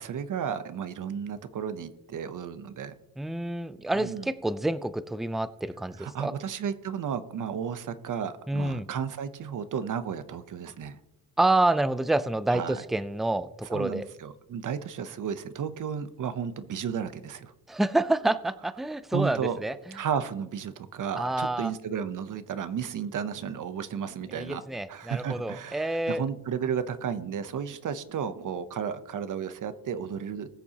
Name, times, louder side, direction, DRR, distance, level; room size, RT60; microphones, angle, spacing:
voice 1, 0.0-2.9 3.9-4.3 6.0-11.0 12.5-12.8 13.6-17.5 19.1-19.6 19.9-24.6 24.9-30.5, right 7 dB, 55° right, 12 dB, 0.8 m, -33 dB
voice 2, 3.2-6.3 8.5-8.9 11.4-14.1 17.7-19.7 21.2-21.7 24.3-26.2, right 2 dB, ahead, 15 dB, 0.4 m, -28 dB
20.5 x 6.9 x 2.9 m, 0.97 s
cardioid pair, 105°, 37 cm